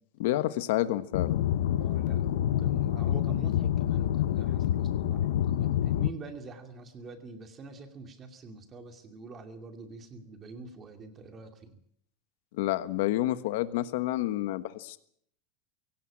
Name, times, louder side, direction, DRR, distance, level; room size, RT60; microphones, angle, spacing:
voice 1, 0.2-1.4 12.6-15.0, left 15 dB, 60° left, 12 dB, 1.3 m, -29 dB
sound 1, 1.1-6.1, left 11 dB, 85° left, 1.0 m, -27 dB
voice 2, 1.7-11.8, right 3 dB, 20° right, 7 dB, 2.5 m, -46 dB
22.0 x 18.0 x 8.7 m, 0.68 s
supercardioid pair, 175°, 0 cm